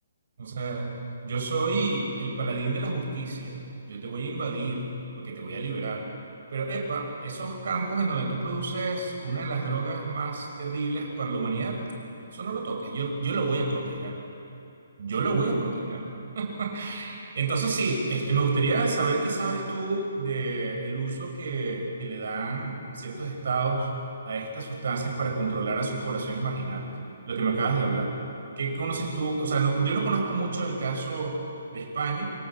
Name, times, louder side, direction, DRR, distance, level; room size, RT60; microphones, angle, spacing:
voice 1, 0.4-1.0 1.2-3.6 3.9-4.8 5.2-6.0 6.5-11.8 12.3-14.2 15.0-16.1 16.3-23.9 24.2-26.9 27.3-28.1 28.6-31.4 31.7-32.3, right 3 dB, 55° right, 1 dB, 6.1 m, -29 dB
29.5 x 23.0 x 7.5 m, 2.8 s
hypercardioid pair, 175°, 0 cm